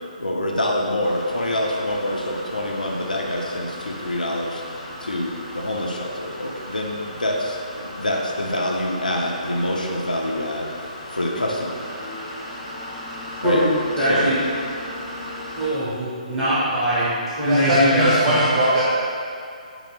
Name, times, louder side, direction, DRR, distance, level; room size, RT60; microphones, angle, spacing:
voice 1, 0.2-4.6 5.0-11.8 13.4-13.6 14.0-14.3, left 1 dB, 80° left, -1 dB, 0.5 m, -26 dB
sound 1, 1.0-15.7, left 1 dB, 15° left, 0.7 m, -37 dB
voice 2, 14.0-14.4 15.6-17.1 17.4-18.4, equal, 5° right, -15 dB, 1.4 m, -21 dB
voice 3, 17.5-18.8, equal, 35° right, -9 dB, 0.7 m, -19 dB
3.8 x 2.9 x 3.9 m, 2.4 s
figure-of-eight pair, 135°, 4 cm